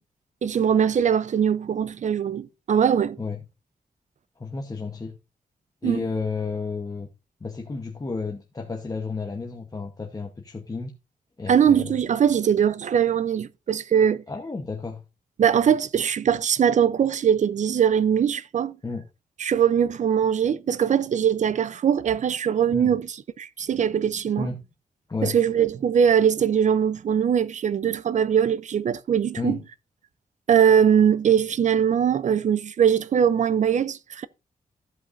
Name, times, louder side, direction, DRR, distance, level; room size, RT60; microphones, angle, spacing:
voice 1, 0.4-3.2 5.8-6.0 11.5-14.2 15.4-18.8 19.4-24.5 25.2-29.6 30.5-34.3, right 8 dB, 55° right, 0.5 m, -21 dB
voice 2, 4.4-5.1 5.8-7.1 7.4-10.9 11.4-11.9 14.3-15.0 18.8-19.0 22.7-23.0 24.4-24.5 25.1-25.4 29.4-29.6, left 4 dB, 25° left, 1.0 m, -31 dB
15.0 x 5.7 x 2.6 m
wide cardioid pair, 140°, 15 cm